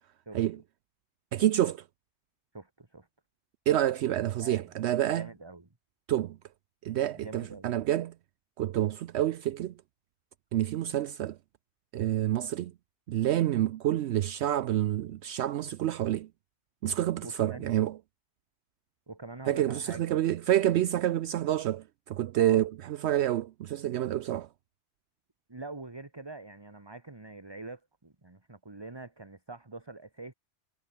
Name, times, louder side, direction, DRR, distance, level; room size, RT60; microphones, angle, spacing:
voice 1, 1.3-1.8 3.7-5.3 6.1-6.4 6.8-8.1 8.6-9.7 10.5-11.4 11.9-12.7 13.1-16.3 16.8-18.0 19.5-24.5, right 12 dB, 70° right, 0.8 m, -28 dB
voice 2, 2.5-3.1 4.4-4.7 5.1-5.7 7.1-7.8 17.2-17.7 19.1-20.0 22.3-22.6 25.5-30.3, right 3 dB, 20° right, 1.7 m, -44 dB
omnidirectional pair, 1.2 m